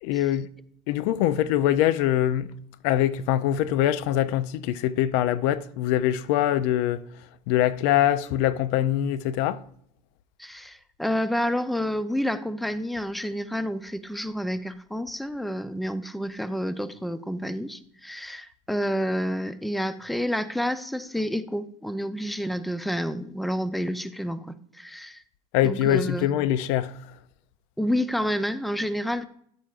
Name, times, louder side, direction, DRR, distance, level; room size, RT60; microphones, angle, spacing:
voice 1, 0.0-0.5 0.9-2.5 2.8-7.0 7.5-9.6 25.5-26.9, left 12 dB, 75° left, 0.5 m, -23 dB
voice 2, 10.4-25.2 25.6-26.3 27.8-29.3, equal, ahead, 0.6 m, -29 dB
10.5 x 8.8 x 2.5 m
supercardioid pair, 90°, 17 cm